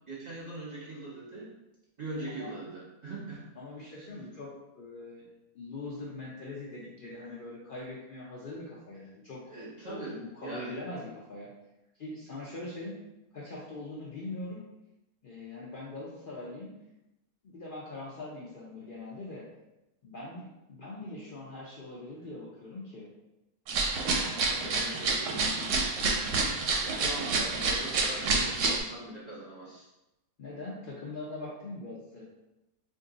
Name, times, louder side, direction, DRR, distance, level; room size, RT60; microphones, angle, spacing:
voice 1, 0.1-1.5 2.0-3.4 9.5-10.7 24.5-25.6 26.9-29.9, right 2 dB, 35° right, -8 dB, 0.7 m, -41 dB
voice 2, 3.6-4.5 4.7-5.3 5.5-9.4 9.9-11.5 12.0-12.9 13.3-14.6 15.2-16.7 17.4-19.4 20.0-23.1 30.4-32.2, left 2 dB, 80° left, -5 dB, 0.4 m, -42 dB
sound 1, 23.7-28.8, right 3 dB, 90° right, 1.1 m, -28 dB
2.6 x 2.6 x 3.7 m, 0.93 s
omnidirectional pair, 1.7 m